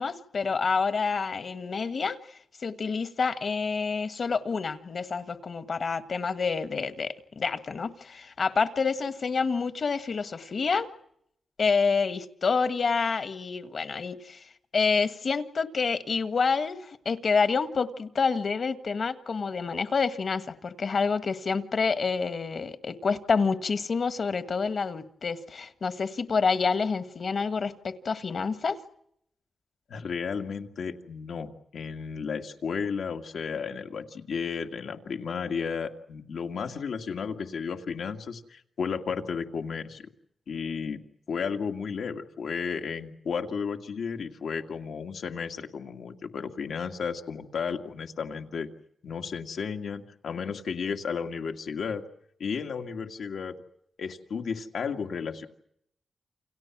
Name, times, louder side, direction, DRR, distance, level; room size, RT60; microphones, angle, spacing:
voice 1, 0.0-10.9 11.6-28.8, left 5 dB, 55° left, 11 dB, 1.6 m, -28 dB
voice 2, 29.9-40.1 40.5-41.0 41.3-48.7 49.0-52.0 52.4-53.6 54.0-55.5, left 6 dB, 85° left, 4 dB, 2.2 m, -33 dB
29.0 x 27.0 x 6.1 m, 0.75 s
wide cardioid pair, 135°, 0 cm